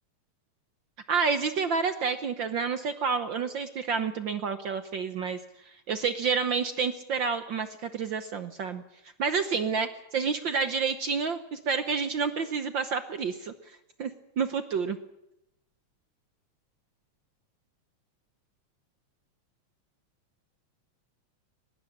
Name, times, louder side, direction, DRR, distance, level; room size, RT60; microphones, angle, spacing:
voice 1, 1.1-5.4 5.9-8.8 9.2-13.5 14.0-14.1 14.4-15.0, right 5 dB, 65° right, 9 dB, 1.1 m, -29 dB
22.5 x 21.5 x 7.5 m, 0.83 s
omnidirectional pair, 3.4 m